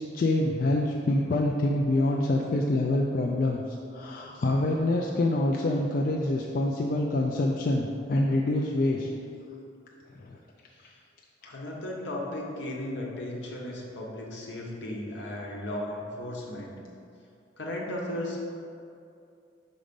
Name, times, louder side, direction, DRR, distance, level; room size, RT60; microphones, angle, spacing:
voice 1, 0.0-9.1 10.1-10.4, left 2 dB, 45° left, -1 dB, 0.3 m, -26 dB
voice 2, 11.4-16.7 17.6-18.4, left 1 dB, 70° left, -2 dB, 1.0 m, -35 dB
5.1 x 4.0 x 5.2 m, 2.5 s
head